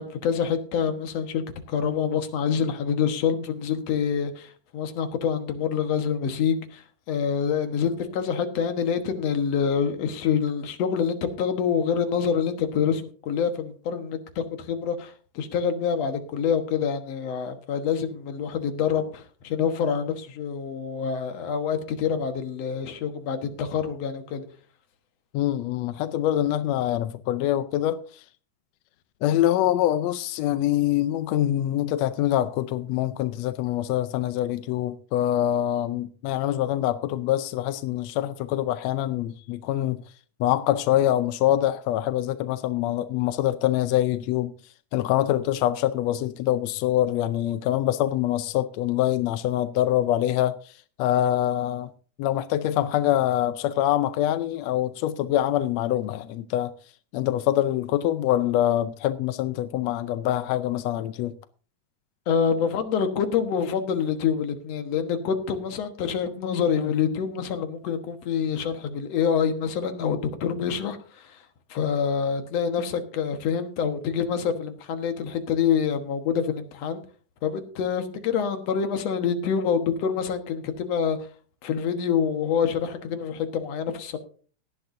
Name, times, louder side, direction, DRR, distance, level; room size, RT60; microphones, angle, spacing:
voice 1, 0.0-1.4 1.7-24.4 62.3-71.4 71.7-77.0 77.4-81.2 81.6-84.2, left 7 dB, 60° left, 2.3 m, -26 dB
voice 2, 25.3-28.2 29.2-40.0 40.4-44.5 44.9-50.7 51.0-51.9 52.2-56.7 57.1-61.3, left 12 dB, 80° left, 1.6 m, -24 dB
18.0 x 11.0 x 2.6 m
omnidirectional pair, 3.6 m